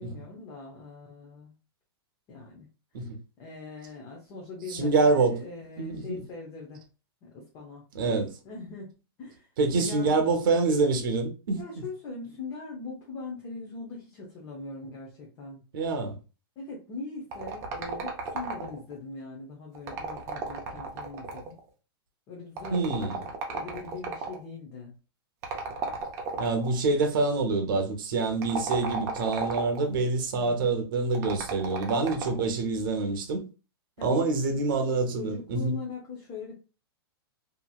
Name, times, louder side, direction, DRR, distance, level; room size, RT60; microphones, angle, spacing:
voice 1, 0.0-1.5 2.3-2.7 3.4-6.8 7.2-8.9 9.2-9.5 9.7-10.2 11.6-15.6 16.6-21.6 22.3-25.0 30.3-30.7 34.0-34.4 35.1-36.5, left 3 dB, 25° left, 0.6 m, -41 dB
voice 2, 4.7-5.4 5.8-6.2 7.9-8.3 9.6-11.8 15.7-16.2 22.7-23.2 26.4-33.4 34.0-35.8, right 3 dB, 55° right, 0.8 m, -26 dB
sound 1, 17.3-18.9 19.7-21.6 22.6-24.4 25.4-26.7 28.3-29.9 31.1-32.5, right 4 dB, 20° right, 0.5 m, -34 dB
2.9 x 2.7 x 2.3 m
supercardioid pair, 165°, 13 cm